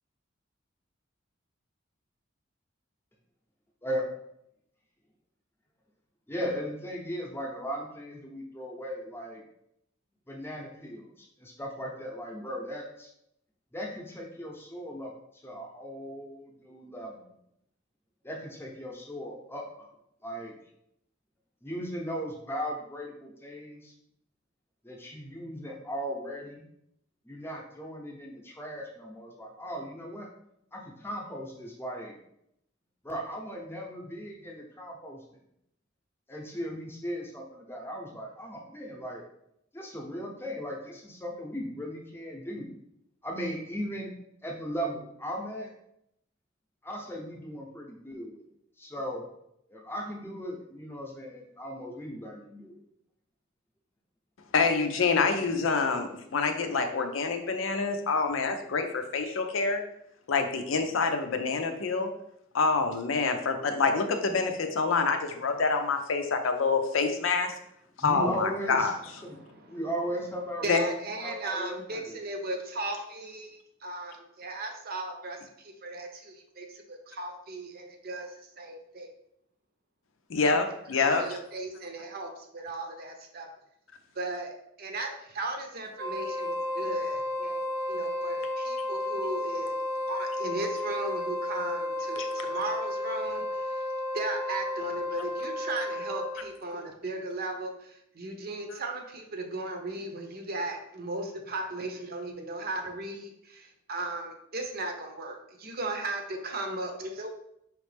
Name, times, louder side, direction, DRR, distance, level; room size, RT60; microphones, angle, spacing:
voice 1, 6.3-9.4 10.3-13.1 13.7-15.1 15.4-17.3 18.2-19.9 20.2-20.5 21.6-23.9 24.8-26.6 27.2-30.3 30.7-32.1 33.0-35.4 36.3-39.2 39.7-42.7 43.2-44.1 44.4-45.7 46.8-48.4 48.8-49.2 49.7-52.8 68.0-68.9 69.2-69.4 69.7-70.9 71.2-72.2, equal, 10° left, 0 dB, 0.8 m, -37 dB
voice 2, 54.5-59.8 60.3-62.1 62.5-67.5 68.0-68.9 70.7-70.8 80.3-81.3 92.2-92.3, left 4 dB, 75° left, 6 dB, 0.6 m, -26 dB
voice 3, 69.3-69.8 70.6-78.3 78.6-79.1 81.0-83.5 84.1-84.5 84.8-89.7 90.1-93.8 94.1-107.3, right 2 dB, 50° right, 3 dB, 0.7 m, -36 dB
Wind instrument woodwind instrument, 85.9-96.5, left 1 dB, 70° right, 1.0 m, -32 dB
4.9 x 3.1 x 3.3 m, 0.76 s
head